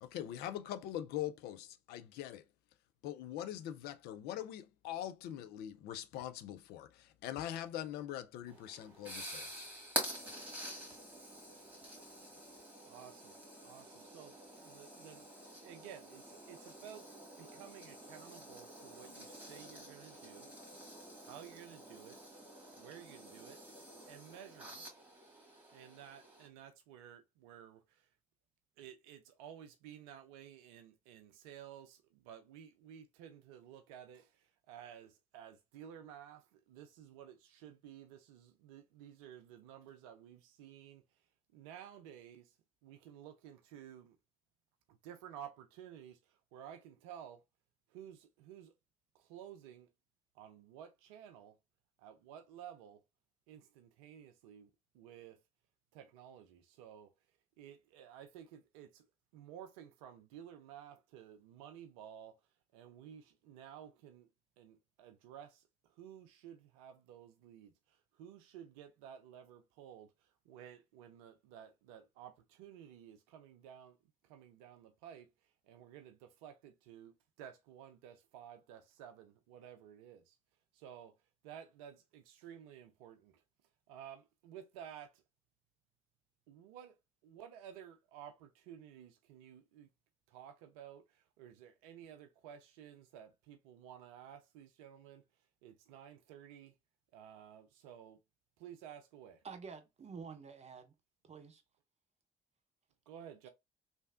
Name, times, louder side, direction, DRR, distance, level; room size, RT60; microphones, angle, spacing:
voice 1, 0.0-2.4 3.0-9.7, left 11 dB, 60° left, 0.4 m, -43 dB
sound 1, 8.5-26.5, right 1 dB, 10° right, 1.7 m, -48 dB
voice 2, 12.8-13.3 13.6-17.1 17.4-20.5 21.2-22.2 22.8-23.8 24.1-24.9 25.7-28.1 28.8-41.0 41.5-42.5 42.8-44.2 44.9-47.4 47.9-48.7 49.1-49.9 50.3-51.6 52.0-53.0 53.5-55.4 55.9-57.1 57.6-59.0 59.3-62.4 62.7-64.3 64.6-74.0 74.2-75.3 75.6-80.4 80.7-81.1 81.4-83.4 83.9-85.2 86.5-87.0 87.2-89.9 90.3-95.2 95.6-96.7 97.1-98.2 98.6-99.4 103.1-103.5, right 9 dB, 75° right, 0.5 m, -54 dB
voice 3, 99.4-100.9 101.2-101.6 103.4-103.5, right 5 dB, 35° right, 0.7 m, -49 dB
3.1 x 2.5 x 2.4 m
hypercardioid pair, 50°, 18 cm